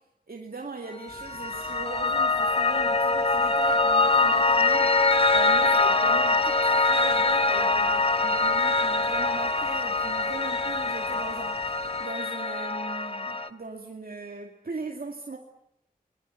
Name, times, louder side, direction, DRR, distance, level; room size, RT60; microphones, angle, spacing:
voice 1, 0.3-5.0 5.3-15.4, right 3 dB, 80° right, 2 dB, 2.3 m, -39 dB
Piano, 1.1-13.5, left 3 dB, 35° left, 1.3 m, -24 dB
sound 1, 1.1-12.1, right 1 dB, 20° right, 6.6 m, -50 dB
27.0 x 21.5 x 9.1 m, 0.76 s
wide cardioid pair, 60°, 15 cm